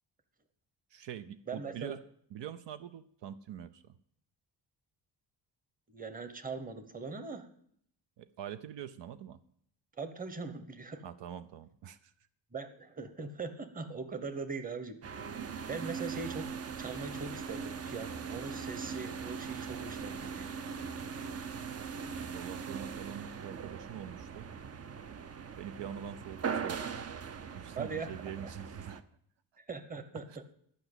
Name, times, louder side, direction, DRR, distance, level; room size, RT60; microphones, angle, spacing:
voice 1, 0.9-2.0 2.3-3.9 8.2-9.4 11.0-12.1 22.2-24.5 25.6-27.1 27.5-29.0 30.3-30.4, right 9 dB, 70° right, 12 dB, 0.7 m, -44 dB
voice 2, 1.5-2.0 5.9-7.5 10.0-11.0 12.5-15.2 15.7-16.5 16.8-20.5 27.7-28.1 28.4-28.5 29.7-30.3, right 4 dB, 20° right, 10 dB, 1.0 m, -41 dB
sound 1, 15.0-29.0, right 6 dB, 35° right, 0.6 m, -40 dB
11.5 x 5.9 x 8.0 m, 0.65 s
cardioid pair, 135°, 44 cm